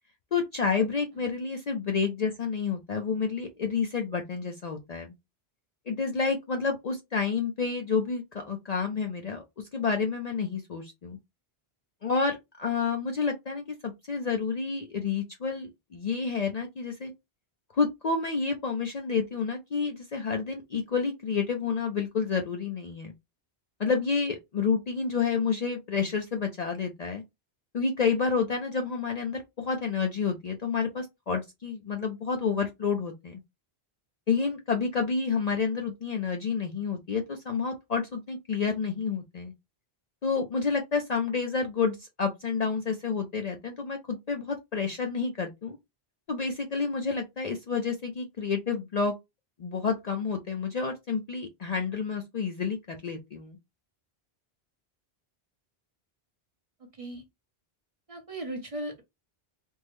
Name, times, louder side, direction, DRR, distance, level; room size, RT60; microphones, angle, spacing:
voice 1, 0.3-5.1 5.9-9.4 9.7-11.2 12.0-17.1 17.7-23.1 23.8-27.2 27.7-33.4 34.3-39.5 40.2-45.8 46.3-49.1 49.6-53.6, left 5 dB, 50° left, 0.5 m, -29 dB
voice 2, 56.8-57.2 58.1-59.0, right 1 dB, 35° right, 0.8 m, -37 dB
3.5 x 2.0 x 3.1 m
omnidirectional pair, 1.1 m